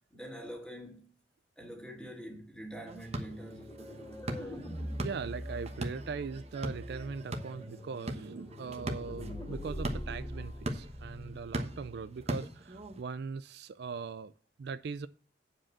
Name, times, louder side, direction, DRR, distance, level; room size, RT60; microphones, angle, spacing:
voice 1, 0.1-1.1 1.6-3.8, equal, 5° left, 2.4 m, -45 dB
sound 1, 2.9-13.0, right 1 dB, 35° right, 1.1 m, -41 dB
sound 2, 3.3-12.0, equal, 25° left, 2.3 m, -43 dB
voice 2, 5.0-14.3 14.6-15.1, right 5 dB, 65° right, 0.4 m, -40 dB
8.5 x 5.0 x 7.3 m
head